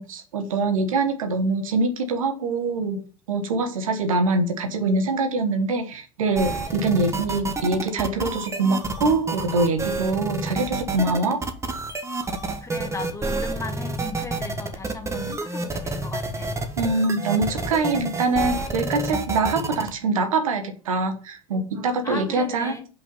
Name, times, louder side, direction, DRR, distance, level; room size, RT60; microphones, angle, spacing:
voice 1, 0.0-11.4 16.8-22.8, right 3 dB, 80° right, 1.3 m, -24 dB
sound 1, 6.4-19.9, right 3 dB, 15° right, 1.3 m, -29 dB
voice 2, 12.6-16.5 22.0-22.9, left 3 dB, 15° left, 1.5 m, -36 dB
5.5 x 5.4 x 5.5 m
hypercardioid pair, 80°, 17 cm